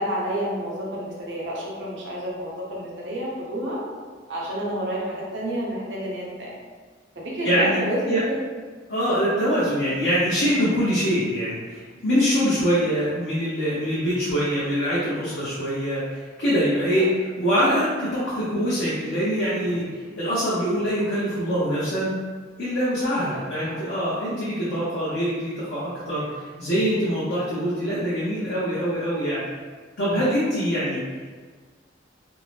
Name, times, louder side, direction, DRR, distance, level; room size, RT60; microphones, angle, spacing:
voice 1, 0.0-3.8 4.3-6.6 7.2-8.2 17.0-17.1 23.2-23.4, equal, 70° right, -4 dB, 0.7 m, -30 dB
voice 2, 7.4-7.8 8.1-8.2 8.9-22.2 22.6-29.4 30.0-31.0, equal, 60° left, -9 dB, 0.6 m, -24 dB
2.6 x 2.0 x 3.1 m, 1.5 s
head